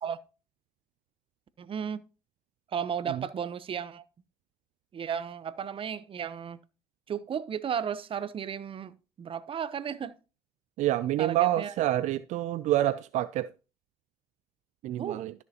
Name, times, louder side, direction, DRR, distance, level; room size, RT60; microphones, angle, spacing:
voice 1, 1.6-2.0 2.7-4.0 4.9-6.6 7.1-10.2 11.2-11.7 15.0-15.2, right 8 dB, 45° right, 0.8 m, -34 dB
voice 2, 10.8-13.5 14.8-15.3, right 14 dB, 75° right, 0.4 m, -27 dB
13.0 x 6.7 x 2.9 m
supercardioid pair, 80°, 12 cm